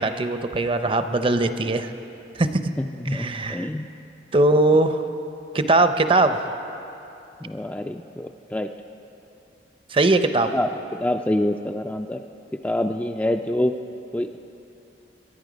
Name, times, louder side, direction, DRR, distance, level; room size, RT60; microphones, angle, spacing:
voice 1, 0.0-1.9 2.4-2.6 3.1-3.7 4.3-5.0 5.5-6.5 9.9-10.5, right 2 dB, 30° right, 9 dB, 0.6 m, -20 dB
voice 2, 2.8-3.9 7.4-8.7 10.5-12.2 12.6-13.7 14.1-14.4, left 1 dB, 10° left, 5 dB, 0.3 m, -26 dB
22.5 x 11.0 x 5.1 m, 2.8 s
head